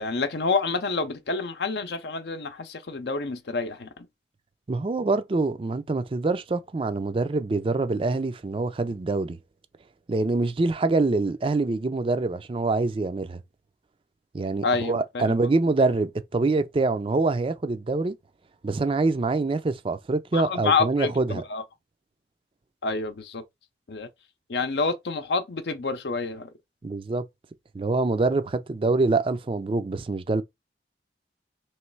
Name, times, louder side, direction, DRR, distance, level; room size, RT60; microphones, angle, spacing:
voice 1, 0.0-4.1 14.6-15.3 20.3-21.6 22.8-23.4 23.9-24.1 24.5-26.5, left 4 dB, 70° left, 0.6 m, -28 dB
voice 2, 4.7-9.4 10.1-13.4 14.3-18.2 18.6-21.4 26.8-27.2 27.7-30.4, right 3 dB, 30° right, 0.4 m, -25 dB
3.1 x 3.1 x 4.5 m
head